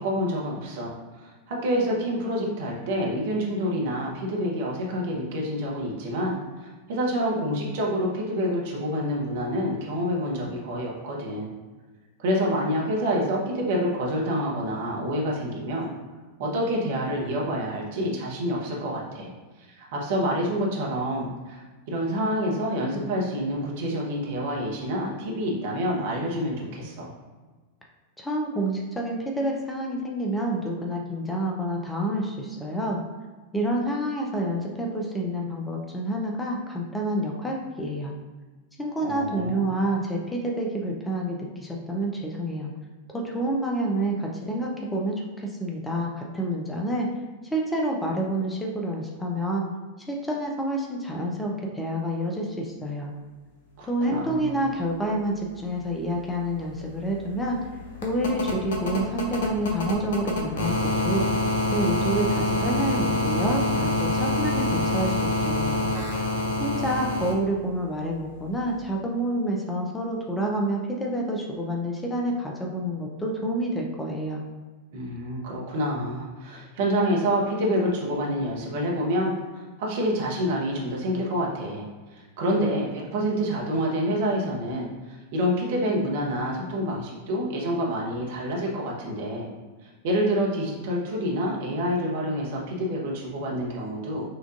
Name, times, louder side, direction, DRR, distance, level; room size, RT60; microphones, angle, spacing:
voice 1, 0.0-11.5 12.2-15.9 16.4-19.3 19.7-27.1 39.0-39.7 53.8-54.5 74.9-79.3 79.8-81.9 82.1-89.5 90.0-94.2, equal, 55° right, -2 dB, 1.0 m, -27 dB
voice 2, 28.2-33.0 33.5-38.1 38.8-42.7 43.1-47.1 47.5-49.7 50.1-53.1 53.9-57.6 58.0-61.3 61.7-65.9 66.6-74.4, right 1 dB, 10° left, -1 dB, 0.6 m, -28 dB
sound 1, 56.1-56.2 56.4-67.3 68.8-68.9, left 2 dB, 55° left, 0.8 m, -26 dB
5.8 x 2.5 x 2.5 m, 1.3 s
figure-of-eight pair, 90°, 0 cm